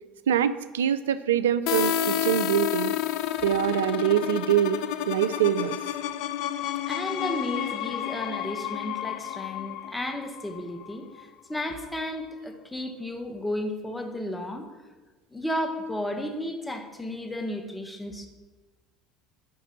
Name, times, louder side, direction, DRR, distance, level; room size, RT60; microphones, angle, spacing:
voice 1, 0.3-2.9 3.4-5.8, right 10 dB, 85° right, 14 dB, 0.4 m, -24 dB
sound 1, 1.7-11.2, left 11 dB, 65° left, 0.5 m, -30 dB
voice 2, 6.8-14.7 15.3-18.3, left 1 dB, 10° left, 4 dB, 1.4 m, -33 dB
9.3 x 6.0 x 7.3 m, 1.2 s
hypercardioid pair, 75°, 0 cm